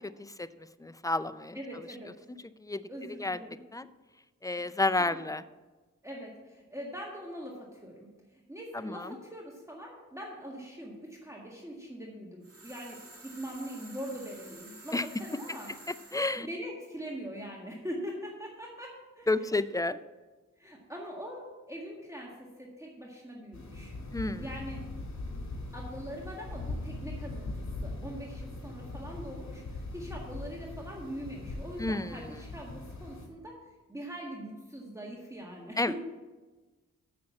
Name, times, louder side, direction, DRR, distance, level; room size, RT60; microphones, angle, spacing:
voice 1, 0.8-1.6 2.6-2.8 3.2-3.4 3.7-3.9 4.4-5.4 8.7-9.1 14.9-15.0 16.1-16.5 19.3-20.0 24.1-24.5 31.8-32.4 35.8-35.9, left 2 dB, 10° left, 15 dB, 0.4 m, -30 dB
voice 2, 1.5-2.1 2.9-3.6 6.0-15.7 16.4-19.3 20.6-23.9 24.4-24.8 25.7-33.6 33.9-35.9, equal, 10° right, -2 dB, 1.7 m, -42 dB
sound 1, 12.4-16.4, right 2 dB, 45° right, 2.3 m, -51 dB
sound 2, 23.5-33.3, left 2 dB, 60° left, 2.2 m, -40 dB
7.6 x 5.9 x 7.2 m, 1.2 s
cardioid pair, 40°, 33 cm